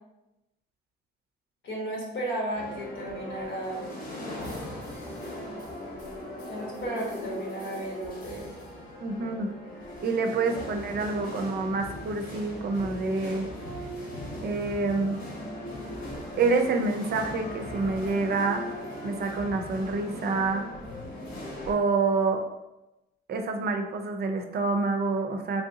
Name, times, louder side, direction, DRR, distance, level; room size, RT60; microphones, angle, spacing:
voice 1, 1.6-3.8 6.5-8.5, right 1 dB, 75° left, -3 dB, 1.2 m, -34 dB
sound 1, 2.5-21.7, left 1 dB, 45° left, 1.0 m, -39 dB
voice 2, 9.0-9.5 10.0-13.5 14.4-15.2 16.4-18.6 19.0-20.6 21.7-22.4 23.3-25.6, right 3 dB, 55° right, 4 dB, 0.5 m, -27 dB
3.1 x 2.7 x 2.7 m, 0.95 s
cardioid pair, 90°, 20 cm